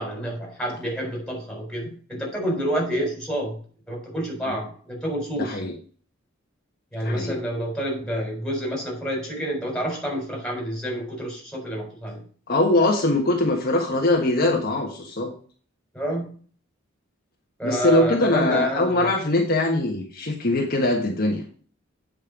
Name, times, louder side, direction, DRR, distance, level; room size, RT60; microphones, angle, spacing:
voice 1, 0.0-3.5 3.9-5.6 6.9-12.2 15.9-16.3 17.6-19.1, equal, 5° left, -1 dB, 4.2 m, -28 dB
voice 2, 5.4-5.7 7.0-7.4 12.5-15.3 17.6-21.4, left 2 dB, 50° left, 0 dB, 1.5 m, -22 dB
8.8 x 5.4 x 5.1 m, 0.43 s
head